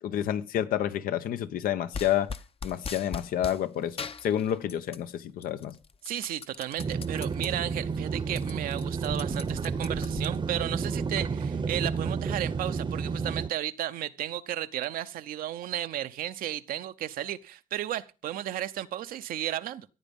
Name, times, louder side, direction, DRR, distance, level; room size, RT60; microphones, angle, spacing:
voice 1, 0.0-2.3 2.6-5.8, left 10 dB, 80° left, 1.1 m, -29 dB
sound 1, 1.9-3.6 4.0-5.1 5.4-7.5 7.9-8.0 8.2-10.7, left 5 dB, 40° left, 0.9 m, -40 dB
voice 2, 6.0-19.9, right 12 dB, 80° right, 0.9 m, -34 dB
sound 2, 6.8-13.5, right 5 dB, 35° right, 0.9 m, -31 dB
15.0 x 9.0 x 5.4 m
supercardioid pair, 65°, 15 cm